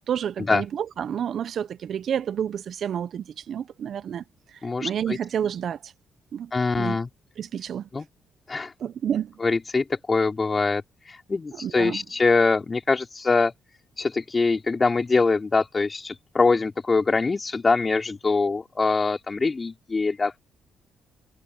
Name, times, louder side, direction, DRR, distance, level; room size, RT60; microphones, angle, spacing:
voice 1, 0.1-4.2 4.8-5.9 6.3-6.5 6.8-7.0 7.4-7.9 8.8-9.3 11.5-12.0, right 9 dB, 65° right, 0.9 m, -29 dB
voice 2, 4.6-5.2 6.5-7.1 7.9-8.1 8.5-8.7 9.4-13.5 14.0-20.4, left 4 dB, 35° left, 4.2 m, -23 dB
supercardioid pair, 60°, 0 cm